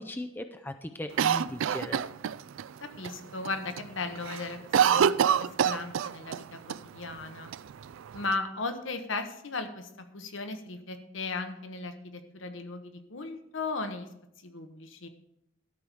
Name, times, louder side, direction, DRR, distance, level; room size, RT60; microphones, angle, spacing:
voice 1, 0.0-2.0, left 1 dB, 10° left, 7 dB, 0.4 m, -38 dB
Cough, 1.2-2.7 3.0-3.1 3.5-3.9 4.2-6.4 6.7-6.8 7.5-8.3, right 8 dB, 70° right, 0.3 m, -26 dB
voice 2, 2.8-5.1 5.4-7.5 8.1-14.1 14.4-15.1, left 3 dB, 65° left, 7 dB, 1.1 m, -36 dB
13.0 x 4.8 x 6.8 m, 0.80 s
head